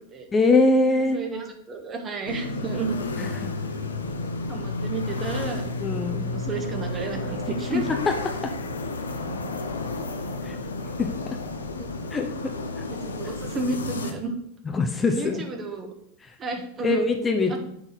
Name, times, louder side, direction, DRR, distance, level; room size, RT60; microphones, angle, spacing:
voice 1, 0.3-1.2 3.2-3.5 5.8-6.3 7.7-8.1 10.4-10.6 11.0-11.1 12.1-12.3 12.8-12.9 14.7-15.4 16.2-16.3 16.8-17.6, left 3 dB, 20° left, 5 dB, 0.9 m, -22 dB
voice 2, 1.0-3.0 4.2-5.7 6.2-7.9 11.8-11.9 12.9-14.3 15.1-15.9 16.4-17.0 17.5-17.6, right 3 dB, 30° right, 4 dB, 1.5 m, -32 dB
sound 1, 2.3-14.1, left 3 dB, 80° left, 0.8 m, -31 dB
7.0 x 4.1 x 5.9 m, 0.71 s
figure-of-eight pair, 85°, 0 cm